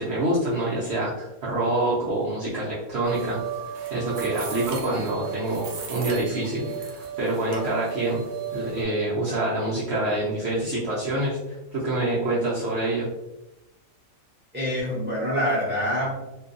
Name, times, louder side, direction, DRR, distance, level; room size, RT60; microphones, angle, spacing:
voice 1, 0.0-3.4 3.9-8.2 8.5-13.1, right 1 dB, 65° right, -7 dB, 0.6 m, -26 dB
sound 1, 3.0-8.8, right 8 dB, 80° right, 1.1 m, -34 dB
voice 2, 14.5-16.2, equal, 10° right, -7 dB, 0.6 m, -26 dB
2.6 x 2.3 x 2.4 m, 0.95 s
omnidirectional pair, 1.7 m